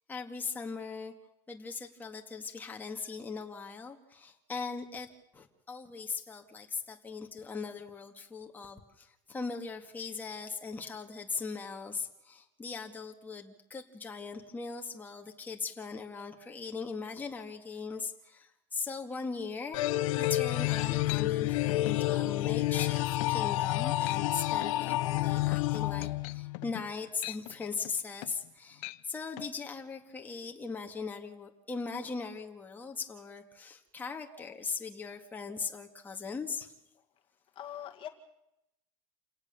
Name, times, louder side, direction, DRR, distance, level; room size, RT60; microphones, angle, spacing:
voice 1, 0.1-1.1 1.5-36.7, left 4 dB, 10° left, 2 dB, 2.0 m, -39 dB
sound 1, 19.7-26.7, left 16 dB, 80° left, 1.1 m, -29 dB
sound 2, 20.2-20.6 21.1-21.3 21.7-22.0 22.4-22.5 22.8-22.9 23.2-23.4 23.9-24.3 24.6-28.5 28.8-29.0 29.4-29.5, left 22 dB, 55° left, 0.8 m, -42 dB
voice 2, 37.6-38.1, left 11 dB, 30° left, 5 dB, 2.0 m, -42 dB
28.5 x 18.0 x 7.0 m, 0.85 s
supercardioid pair, 155°, 17 cm